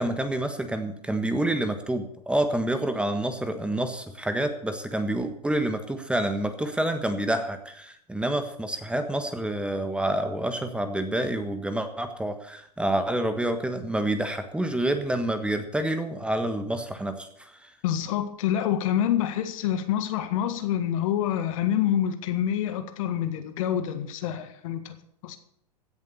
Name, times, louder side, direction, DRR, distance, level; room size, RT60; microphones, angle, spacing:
voice 1, 0.0-17.7, right 1 dB, 5° right, 9 dB, 1.4 m, -28 dB
voice 2, 17.8-25.0 25.2-25.4, left 10 dB, 55° left, 9 dB, 1.7 m, -27 dB
16.0 x 7.4 x 7.0 m, 0.71 s
figure-of-eight pair, 100°, 21 cm